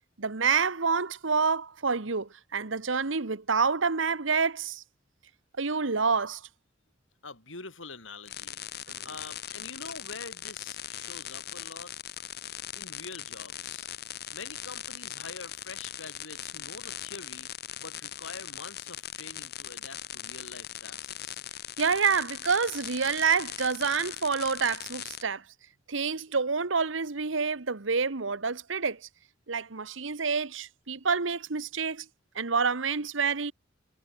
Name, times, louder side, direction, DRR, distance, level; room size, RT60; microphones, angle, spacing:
voice 1, 0.2-4.8 5.6-6.4 21.8-25.4 25.9-29.0 29.5-32.1 32.3-33.5, right 5 dB, 80° right, 1.3 m, -28 dB
voice 2, 7.2-8.6 9.0-11.9 12.7-13.9 14.3-17.5 17.8-21.4, left 4 dB, 80° left, 6.8 m, -45 dB
sound 1, 8.3-25.2, left 11 dB, 55° left, 1.8 m, -40 dB
head